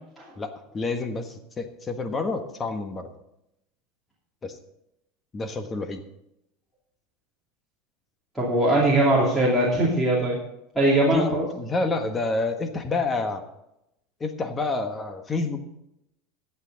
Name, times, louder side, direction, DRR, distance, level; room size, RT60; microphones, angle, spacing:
voice 1, 0.4-3.1 4.4-4.6 5.3-6.0 11.1-13.4 14.2-15.6, left 3 dB, 20° left, 7 dB, 1.4 m, -28 dB
voice 2, 8.3-10.4 10.7-11.5, right 1 dB, ahead, -6 dB, 2.9 m, -21 dB
14.5 x 8.5 x 4.0 m, 0.84 s
supercardioid pair, 135°, 0 cm